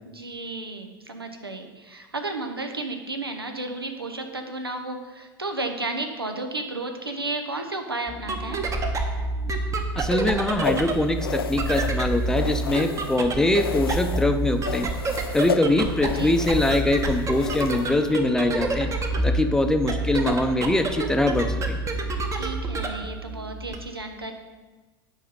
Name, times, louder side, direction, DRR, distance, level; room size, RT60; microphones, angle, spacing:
voice 1, 0.1-8.6 16.1-16.4 22.3-24.3, right 2 dB, 90° right, 5 dB, 0.8 m, -33 dB
sound 1, 8.1-23.8, right 2 dB, 25° right, 1.0 m, -28 dB
voice 2, 10.0-14.9 15.3-18.9 19.2-21.8, left 2 dB, 5° left, 7 dB, 0.6 m, -23 dB
sound 2, 10.6-13.2 13.5-14.3 14.6-18.1, left 8 dB, 80° left, 0.4 m, -33 dB
8.5 x 5.0 x 5.3 m, 1.3 s
figure-of-eight pair, 80°, 12 cm